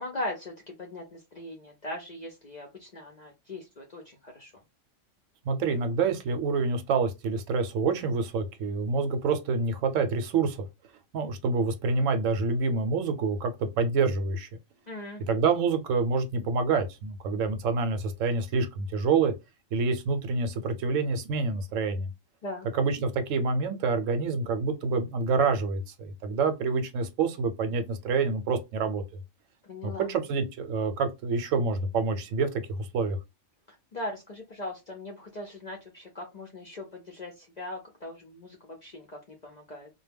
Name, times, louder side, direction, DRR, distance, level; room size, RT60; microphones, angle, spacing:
voice 1, 0.0-4.5 14.9-15.2 22.4-22.7 29.6-30.1 33.9-39.9, left 1 dB, 55° left, 0.5 m, -39 dB
voice 2, 5.5-10.6 11.1-14.5 15.3-19.3 19.7-22.1 22.7-29.0 29.8-33.2, right 4 dB, 75° right, 0.9 m, -27 dB
2.1 x 2.1 x 3.3 m
omnidirectional pair, 1.3 m